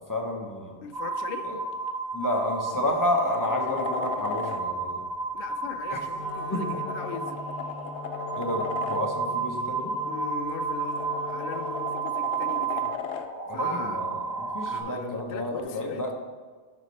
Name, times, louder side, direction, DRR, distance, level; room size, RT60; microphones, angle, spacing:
voice 1, 0.1-0.7 1.5-1.6 2.1-5.0 5.9-6.0 6.5-6.6 8.3-9.9 13.5-16.1, left 1 dB, 20° left, 0 dB, 0.8 m, -30 dB
voice 2, 0.8-1.5 5.3-7.4 10.0-13.0 13.5-14.0 14.6-16.1, left 7 dB, 60° left, 8 dB, 0.7 m, -40 dB
sound 1, 0.9-14.8, right 4 dB, 85° right, 1.8 m, -32 dB
sound 2, 1.7-1.9 2.3-4.6 6.3-9.0 10.5-13.3 15.6-15.7, left 7 dB, 85° left, 0.9 m, -37 dB
Wind instrument woodwind instrument, 6.1-12.1, left 2 dB, 70° right, 1.7 m, -40 dB
9.6 x 5.6 x 3.2 m, 1.5 s
omnidirectional pair, 1.1 m